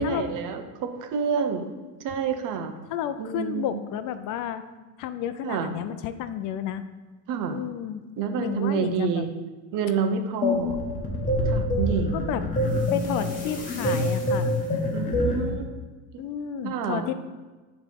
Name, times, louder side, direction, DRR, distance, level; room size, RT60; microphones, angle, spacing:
voice 1, 0.0-1.7 2.0-2.7 3.2-3.8 5.4-5.7 7.3-7.6 8.2-9.3 9.7-10.8 11.4-12.4 14.9-15.8 16.1-16.2 16.6-17.0, right 6 dB, 55° right, 6 dB, 1.0 m, -28 dB
voice 2, 2.9-4.6 5.0-6.8 7.5-8.0 8.4-9.2 12.1-14.6 16.2-17.1, left 10 dB, 55° left, 11 dB, 0.6 m, -31 dB
sound 1, 10.4-15.6, left 1 dB, 20° left, 1.6 m, -26 dB
9.8 x 3.4 x 5.3 m, 1.3 s
cardioid pair, 135°, 38 cm